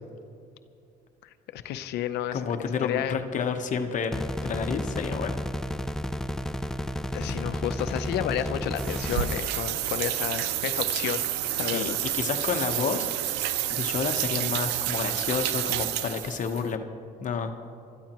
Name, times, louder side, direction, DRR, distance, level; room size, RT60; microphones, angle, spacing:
voice 1, 1.5-2.4 2.8-3.2 7.1-11.3 11.6-12.0, left 11 dB, 80° left, 11 dB, 0.6 m, -31 dB
voice 2, 2.3-5.4 7.2-7.4 11.6-13.3 13.7-16.8 17.2-17.5, left 6 dB, 50° left, 5 dB, 1.0 m, -30 dB
sound 1, 4.1-9.4, equal, 5° left, 0.3 m, -32 dB
sound 2, 8.8-16.6, right 13 dB, 90° right, 0.5 m, -29 dB
24.5 x 13.0 x 3.0 m, 2.5 s
cardioid pair, 110°, 17 cm